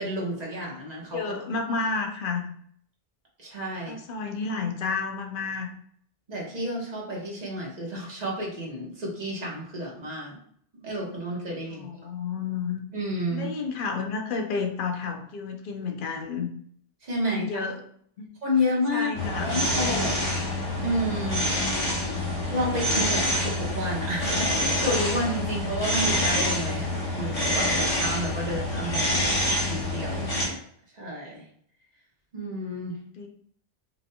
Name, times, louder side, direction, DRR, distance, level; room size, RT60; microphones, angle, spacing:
voice 1, 0.0-1.3 3.4-4.0 6.3-10.4 10.7-11.9 12.9-13.5 17.0-17.6 18.4-20.4 20.8-21.5 22.5-30.5 30.9-31.5 32.3-33.0, equal, 40° right, -3 dB, 1.3 m, -31 dB
voice 2, 1.1-2.5 3.8-5.7 11.7-12.8 13.3-16.5 17.2-17.8 18.2-18.3 18.9-19.6 33.2-33.3, left 4 dB, 60° left, 3 dB, 0.9 m, -31 dB
sound 1, 19.1-30.5, left 1 dB, 35° left, 1.4 m, -26 dB
5.8 x 3.4 x 2.3 m, 0.64 s
omnidirectional pair, 1.0 m